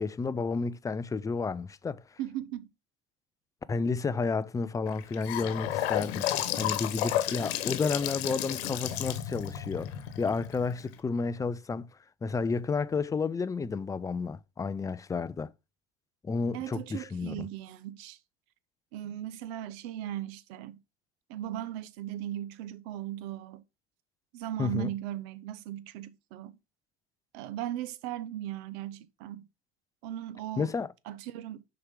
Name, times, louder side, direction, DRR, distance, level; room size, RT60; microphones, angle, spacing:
voice 1, 0.0-2.0 3.7-6.3 6.6-11.9 12.2-15.5 16.2-17.5 24.6-24.9 30.6-30.9, left 4 dB, 10° left, 0.4 m, -31 dB
voice 2, 2.2-2.7 16.5-18.2 18.9-20.8 21.3-23.6 24.3-26.5 27.3-29.5 30.0-30.7 31.1-31.6, right 12 dB, 75° right, 0.9 m, -38 dB
Gurgling / Sink (filling or washing) / Bathtub (filling or washing), 4.9-10.9, left 12 dB, 90° left, 1.1 m, -32 dB
6.5 x 4.7 x 3.6 m
supercardioid pair, 115°, 31 cm